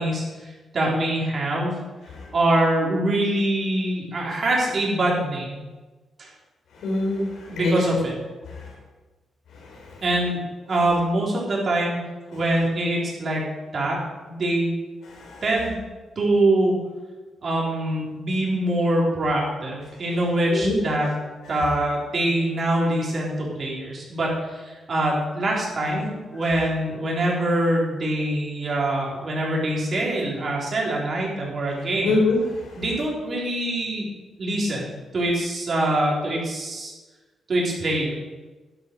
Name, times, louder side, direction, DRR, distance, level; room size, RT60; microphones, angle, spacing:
voice 1, 0.0-1.7 2.3-5.6 6.2-6.3 7.5-8.1 10.0-10.4 10.7-12.0 12.3-13.4 13.7-14.0 14.2-14.7 15.4-15.8 16.2-16.7 17.4-21.1 21.5-32.2 32.8-34.1 34.4-34.9 35.1-36.9 37.5-38.1, right 1 dB, 45° right, -3 dB, 3.9 m, -24 dB
voice 2, 6.8-7.8 8.5-8.7 9.6-9.7 15.1-15.4 20.5-20.8 32.0-32.7, left 2 dB, 85° left, -1 dB, 4.4 m, -25 dB
11.5 x 11.0 x 4.7 m, 1.2 s
cardioid pair, 125°, 0 cm